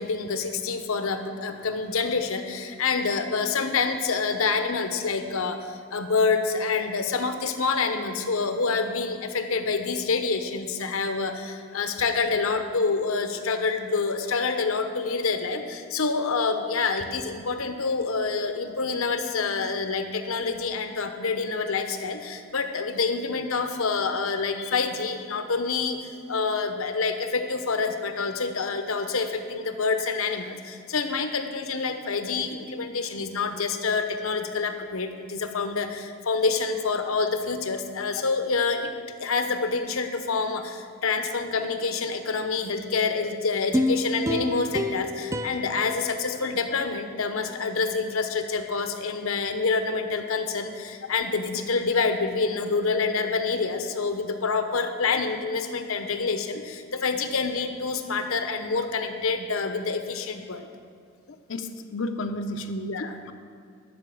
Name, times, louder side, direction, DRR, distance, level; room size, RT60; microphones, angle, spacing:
voice 1, 0.0-38.9 39.2-60.7 62.9-63.1, left 4 dB, 75° left, 7 dB, 0.9 m, -27 dB
sound 1, 43.7-47.0 47.5-47.6, left 1 dB, 15° right, 0.4 m, -29 dB
voice 2, 61.3-63.3, left 1 dB, 60° left, 6 dB, 0.6 m, -33 dB
12.0 x 5.8 x 7.6 m, 2.2 s
head